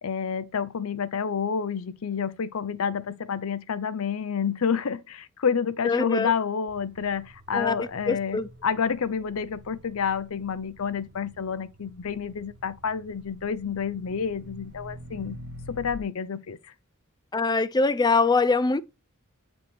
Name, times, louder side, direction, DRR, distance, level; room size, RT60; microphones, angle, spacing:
voice 1, 0.0-15.4 15.7-16.7, left 6 dB, 75° left, 0.6 m, -29 dB
voice 2, 5.8-6.3 7.5-8.5 17.3-18.8, left 3 dB, 20° left, 0.4 m, -23 dB
sound 1, 6.7-16.0, equal, 55° right, 1.4 m, -47 dB
7.7 x 4.8 x 3.4 m
head